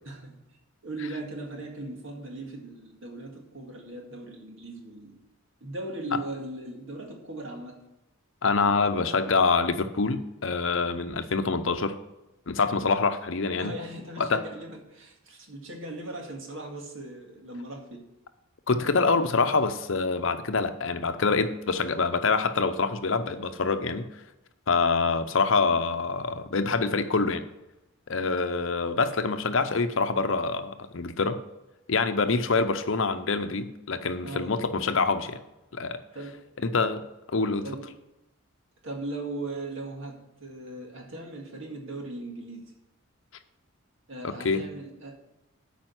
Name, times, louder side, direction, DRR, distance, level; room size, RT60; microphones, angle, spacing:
voice 1, 0.1-0.4 0.8-5.2 5.6-7.8 13.6-18.1 34.2-34.5 36.1-36.5 37.6-37.9 38.8-42.7 44.1-45.1, right 2 dB, 65° right, 2.0 m, -38 dB
voice 2, 8.4-11.9 12.5-13.7 14.2-14.4 18.7-24.1 24.7-27.4 28.1-31.4 31.9-35.4 35.7-36.0 36.6-37.1 37.3-37.7 44.2-44.6, left 4 dB, 65° left, 0.7 m, -25 dB
8.9 x 5.1 x 7.9 m
head